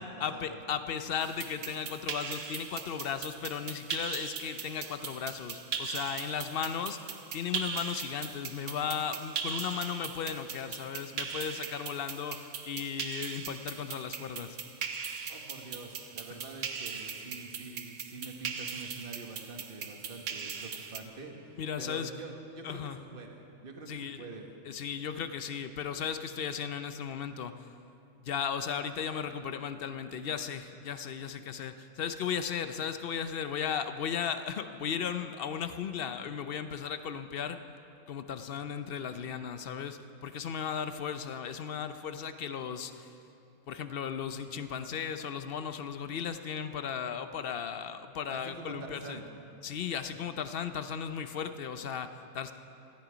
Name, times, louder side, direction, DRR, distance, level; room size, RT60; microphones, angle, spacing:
voice 1, 0.0-14.6 21.6-22.1 22.6-23.0 23.9-24.2 24.6-27.5 28.2-37.6 38.1-43.1 43.7-49.2 49.6-52.5, left 7 dB, 55° left, 10 dB, 0.7 m, -36 dB
sound 1, 1.2-21.0, right 6 dB, 60° right, 1.2 m, -40 dB
voice 2, 15.3-24.5 48.3-49.3 50.1-50.2, right 3 dB, 40° right, 2 dB, 1.6 m, -46 dB
18.0 x 13.5 x 5.1 m, 2.7 s
omnidirectional pair, 1.5 m